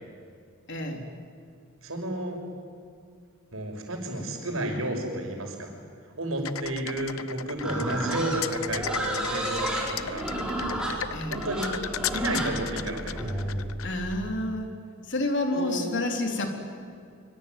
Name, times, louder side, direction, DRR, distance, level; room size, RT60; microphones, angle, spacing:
voice 1, 0.7-1.0 11.1-11.4 13.8-14.7 15.1-16.5, left 2 dB, 60° left, 3 dB, 4.0 m, -29 dB
voice 2, 1.8-2.4 3.5-5.7 6.2-10.3 11.3-11.8 12.1-13.2 15.5-15.9, right 1 dB, 85° right, 3 dB, 6.1 m, -31 dB
sound 1, 6.4-14.1, left 10 dB, 90° left, 0.9 m, -35 dB
sound 2, 6.4-6.5 7.0-13.8, equal, 70° right, 4.3 m, -44 dB
Livestock farm animals working animals, 7.6-13.6, right 1 dB, 5° right, 5.3 m, -31 dB
25.0 x 24.5 x 9.4 m, 2.3 s
head